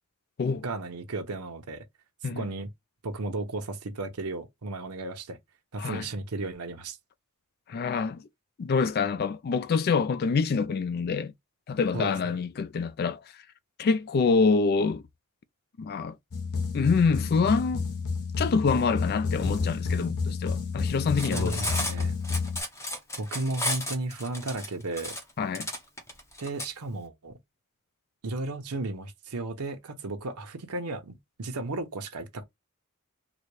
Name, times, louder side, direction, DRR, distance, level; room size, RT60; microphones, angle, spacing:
voice 1, 0.6-1.8 2.4-2.7 3.0-5.4 5.7-7.0 11.9-12.4 21.3-22.2 23.2-25.2 26.4-27.4 28.2-32.4, right 2 dB, 85° right, 0.8 m, -34 dB
voice 2, 7.7-8.2 8.6-11.3 11.7-13.2 13.8-15.0 15.8-16.2 16.7-17.8 18.4-21.6 25.4-25.7, left 5 dB, 45° left, 0.3 m, -26 dB
sound 1, 16.3-22.6, left 4 dB, 85° left, 0.8 m, -30 dB
Cutlery silverware, 21.0-26.7, left 1 dB, 15° left, 0.8 m, -33 dB
3.9 x 2.2 x 3.1 m
head